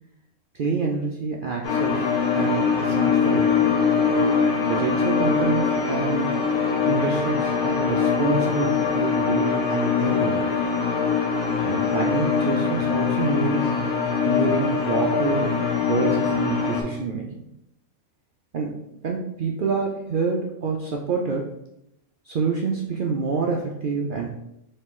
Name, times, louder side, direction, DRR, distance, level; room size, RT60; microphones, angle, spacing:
voice 1, 0.5-3.7 4.6-6.3 6.9-10.5 11.6-13.7 14.3-17.3 18.5-18.7 19.0-21.5 22.3-24.3, right 4 dB, 70° right, 0 dB, 0.5 m, -27 dB
sound 1, 1.6-16.8, left 6 dB, 85° left, 1.2 m, -22 dB
4.2 x 2.9 x 3.6 m, 0.83 s
omnidirectional pair, 1.4 m